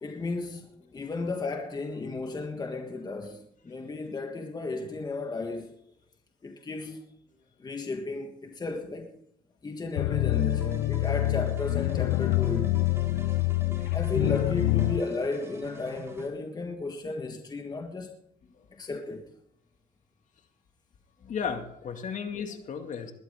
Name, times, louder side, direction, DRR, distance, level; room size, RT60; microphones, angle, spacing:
voice 1, 0.0-5.7 6.4-7.1 7.6-9.2 9.6-12.9 13.9-18.2 18.7-19.3, left 3 dB, 25° left, 1.6 m, -34 dB
sound 1, 10.0-15.0, left 17 dB, 90° left, 0.4 m, -26 dB
sound 2, 10.3-16.3, right 1 dB, 15° right, 3.9 m, -45 dB
voice 2, 13.1-13.6 21.2-23.1, left 6 dB, 50° left, 2.2 m, -35 dB
20.5 x 13.0 x 3.7 m
cardioid pair, 110°, 17 cm